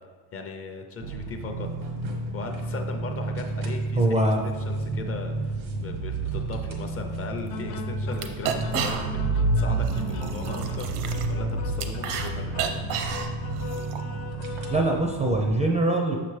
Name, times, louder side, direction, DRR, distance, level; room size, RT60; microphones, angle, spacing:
voice 1, 0.3-1.7 2.3-10.9 11.3-12.8, left 3 dB, 30° left, 4 dB, 0.5 m, -38 dB
sound 1, 1.0-15.6, right 2 dB, 90° right, 1.2 m, -30 dB
voice 2, 4.0-4.4 14.7-16.2, right 1 dB, 15° right, 1 dB, 0.4 m, -23 dB
sound 2, 7.4-7.5 7.8-7.9 8.1-9.3 9.7-12.3 12.5-14.0, right 7 dB, 70° right, 0.8 m, -32 dB
sound 3, 7.5-14.8, left 4 dB, 75° left, 0.7 m, -40 dB
6.3 x 5.8 x 3.2 m, 1.5 s
cardioid pair, 140°, 43 cm